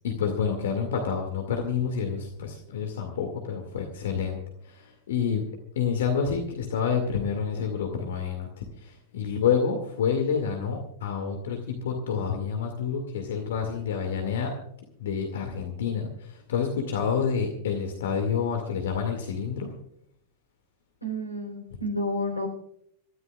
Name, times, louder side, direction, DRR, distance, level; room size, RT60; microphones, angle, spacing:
voice 1, 0.0-4.4 4.6-5.5 5.8-14.5 15.0-19.7, left 6 dB, 60° left, 4 dB, 2.2 m, -28 dB
voice 2, 21.0-22.5, equal, 90° left, 3 dB, 4.0 m, -30 dB
27.5 x 14.0 x 2.4 m, 0.72 s
figure-of-eight pair, 90°, 0 cm